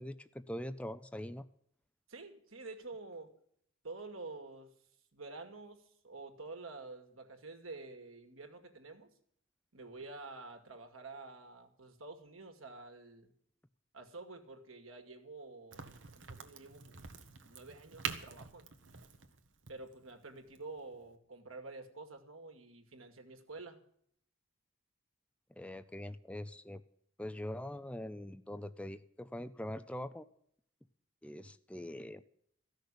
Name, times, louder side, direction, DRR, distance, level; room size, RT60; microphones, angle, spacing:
voice 1, 0.0-1.5 25.5-26.8 27.2-30.3 31.2-32.2, left 1 dB, 5° left, 10 dB, 0.4 m, -43 dB
voice 2, 2.1-3.3 3.8-4.7 5.1-9.1 9.7-13.3 13.9-17.0 17.4-18.8 19.7-23.8, right 3 dB, 90° right, 6 dB, 2.2 m, -49 dB
Crack, 15.7-21.2, right 6 dB, 65° right, 1.4 m, -46 dB
14.5 x 6.5 x 9.9 m, 0.67 s
head